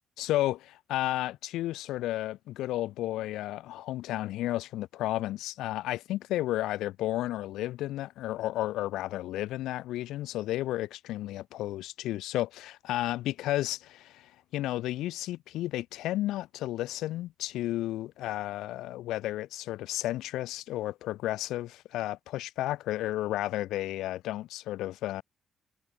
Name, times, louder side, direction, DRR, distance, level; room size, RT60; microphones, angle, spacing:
voice 1, 0.2-25.2, left 15 dB, 90° left, 0.3 m, -32 dB
cardioid pair, 90°, 0 cm